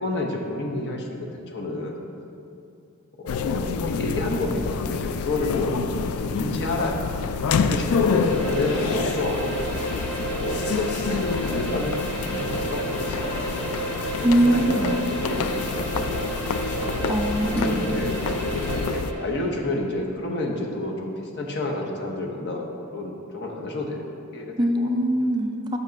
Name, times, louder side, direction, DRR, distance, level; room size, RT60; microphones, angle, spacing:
voice 1, 0.0-2.0 3.2-5.7 6.1-9.8 10.1-11.9 12.2-13.2 14.3-16.3 17.4-24.0 24.3-24.9, left 2 dB, 55° left, 0 dB, 0.9 m, -30 dB
sound 1, 3.3-19.1, left 5 dB, 90° left, 0.3 m, -27 dB
sound 2, 7.7-19.4, right 3 dB, 10° left, 0.9 m, -32 dB
voice 2, 14.2-15.0 16.8-17.9 24.6-25.8, right 1 dB, 20° right, 3 dB, 0.4 m, -22 dB
6.7 x 5.1 x 5.2 m, 2.5 s
head